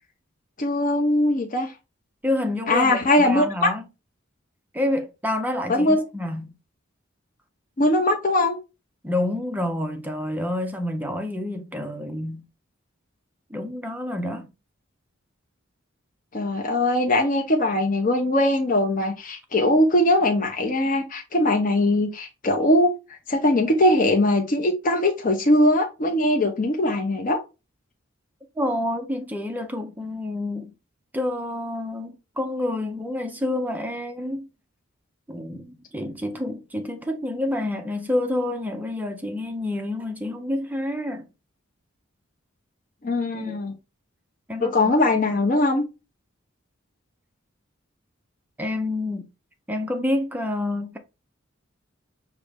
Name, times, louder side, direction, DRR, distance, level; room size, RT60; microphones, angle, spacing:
voice 1, 0.6-1.7 2.7-3.7 5.7-6.0 7.8-8.6 16.3-22.9 23.3-27.4 43.0-43.7 44.6-45.8, left 1 dB, 40° left, 0.7 m, -21 dB
voice 2, 2.2-3.9 4.7-6.5 9.0-12.5 13.5-14.5 28.6-30.7 31.1-34.5 35.3-41.3 43.3-43.6 44.5-44.9 48.6-49.3 49.7-51.0, left 1 dB, 10° right, 0.4 m, -28 dB
5.2 x 2.8 x 3.4 m
head